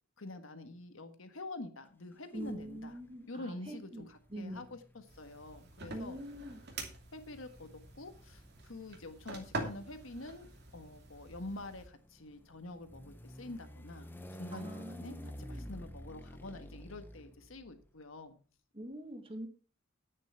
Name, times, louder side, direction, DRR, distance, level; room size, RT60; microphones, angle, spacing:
voice 1, 0.2-2.9 3.3-6.2 7.1-7.7 7.9-18.4, left 2 dB, 80° left, 9 dB, 1.5 m, -47 dB
voice 2, 2.3-4.7 5.9-6.6 14.5-15.7 18.7-19.5, equal, 30° right, 6 dB, 1.9 m, -45 dB
sound 1, 2.4-3.1 4.2-17.9, equal, 10° left, 0.9 m, -51 dB
sound 2, 5.1-11.9, right 2 dB, 55° right, 2.7 m, -46 dB
10.5 x 9.2 x 4.5 m, 0.36 s
head